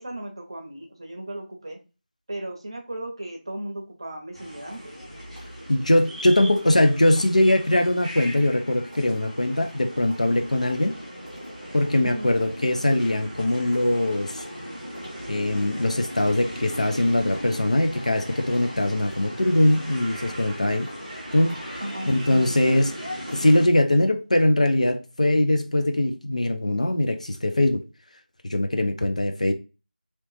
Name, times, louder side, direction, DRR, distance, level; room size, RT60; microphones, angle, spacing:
voice 1, 0.0-1.8 2.3-4.9 12.0-12.3 21.8-22.5, right 1 dB, 30° right, 0.7 m, -36 dB
sound 1, 4.3-23.7, equal, ahead, 0.9 m, -38 dB
voice 2, 5.7-11.0 11.7-14.5 15.3-20.9 21.3-22.9 23.3-27.8 28.4-29.5, left 1 dB, 45° left, 0.5 m, -22 dB
3.0 x 2.9 x 3.1 m
figure-of-eight pair, 175°, 5 cm